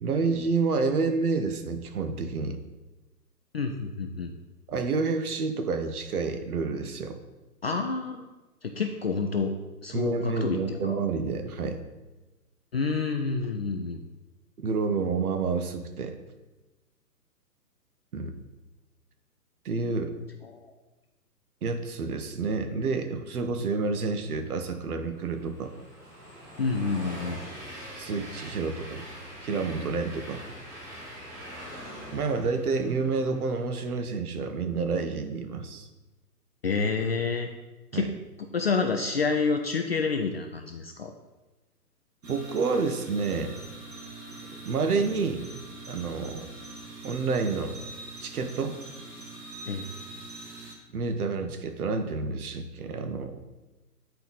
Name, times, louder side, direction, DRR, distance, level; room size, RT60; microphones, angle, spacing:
voice 1, 0.0-2.6 4.7-7.2 9.9-11.8 14.6-16.2 18.1-18.4 19.6-20.1 21.6-25.7 28.0-29.0 29.4-30.4 32.1-35.9 37.9-38.1 42.3-43.5 44.7-45.4 45.9-46.5 47.0-47.8 48.2-48.8 50.9-53.4, right 4 dB, 65° right, 7 dB, 1.0 m, -29 dB
voice 2, 3.5-4.3 7.6-8.3 8.6-9.5 9.8-11.0 12.7-14.0 20.5-20.6 26.6-27.4 36.6-37.5 37.9-38.1 38.5-41.1 49.7-49.9, left 4 dB, 40° left, 4 dB, 0.4 m, -28 dB
Train, 24.3-33.8, equal, 20° right, 2.2 m, -43 dB
sound 1, 42.2-50.7, right 2 dB, 80° right, 1.8 m, -43 dB
8.9 x 4.5 x 4.0 m, 1.1 s
hypercardioid pair, 135°, 49 cm